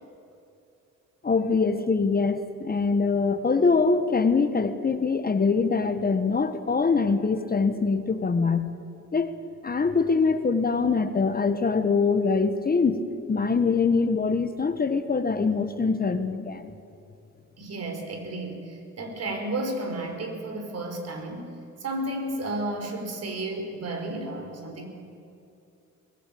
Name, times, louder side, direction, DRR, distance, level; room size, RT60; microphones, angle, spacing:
voice 1, 1.2-8.7 9.1-9.3 9.6-16.7, left 4 dB, 30° left, 10 dB, 1.4 m, -23 dB
voice 2, 17.6-21.5 21.8-24.9, right 1 dB, 55° right, 4 dB, 5.2 m, -32 dB
23.0 x 19.0 x 8.7 m, 2.6 s
cardioid pair, 90°, 30 cm